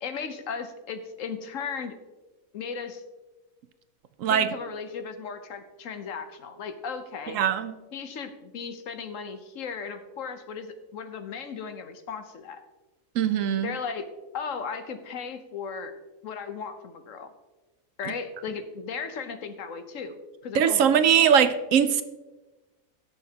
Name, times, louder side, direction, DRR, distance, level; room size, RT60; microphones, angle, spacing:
voice 1, 0.0-2.0 2.5-3.0 4.3-7.4 7.9-12.6 13.6-14.0 14.3-15.9 16.2-17.3 18.0-20.2 20.4-20.9, left 6 dB, 70° left, 9 dB, 1.2 m, -36 dB
voice 2, 7.3-7.7 13.2-13.7 20.5-22.0, right 8 dB, 70° right, 11 dB, 1.0 m, -21 dB
18.0 x 6.6 x 2.8 m, 1.2 s
omnidirectional pair, 1.5 m